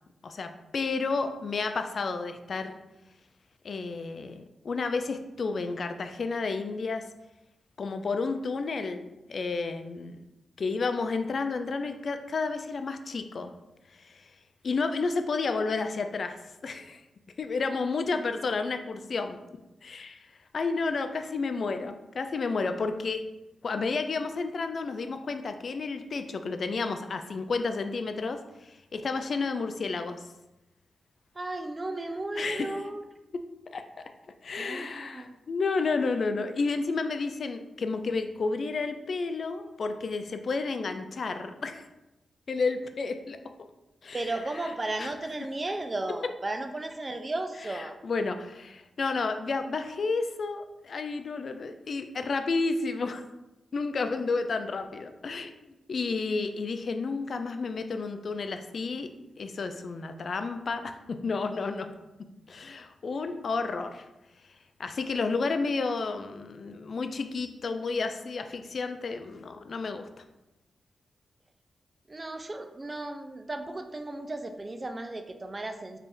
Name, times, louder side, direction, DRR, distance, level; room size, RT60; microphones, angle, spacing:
voice 1, 0.2-2.8 3.6-7.1 7.8-10.2 10.6-13.5 14.0-14.3 14.6-17.0 17.4-19.4 19.8-20.2 20.5-23.2 23.6-30.2 32.4-32.8 33.7-34.0 34.4-41.9 42.5-43.4 44.0-44.2 45.0-45.1 47.7-53.2 53.7-55.5 55.9-59.1 59.4-61.9 62.5-64.1 64.8-70.1, left 4 dB, 60° left, 8 dB, 0.3 m, -31 dB
voice 2, 31.3-33.0 34.6-35.4 44.1-48.0 72.1-76.0, right 2 dB, 30° right, 6 dB, 0.4 m, -35 dB
3.3 x 2.5 x 3.6 m, 0.97 s
cardioid pair, 80°, 0 cm